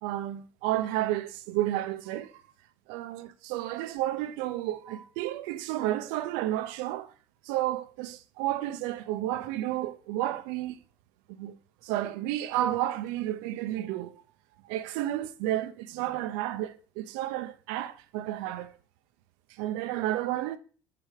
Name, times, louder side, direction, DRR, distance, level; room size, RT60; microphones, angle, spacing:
voice 1, 0.0-2.4 2.9-7.1 7.4-10.8 11.4-11.6 11.8-14.1 14.6-18.7 19.6-20.6, right 14 dB, 85° right, 0.6 m, -31 dB
5.0 x 4.3 x 4.8 m
cardioid pair, 160°, 8 cm